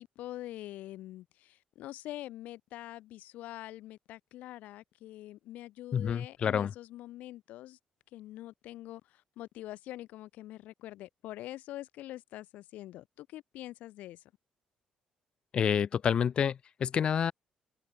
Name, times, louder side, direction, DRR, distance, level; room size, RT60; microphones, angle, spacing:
voice 1, 0.0-7.8 8.1-14.2, left 15 dB, 85° left, 0.9 m, -45 dB
voice 2, 5.9-6.7 15.5-17.3, left 8 dB, 40° left, 0.8 m, -28 dB
cardioid pair, 155°, 3 cm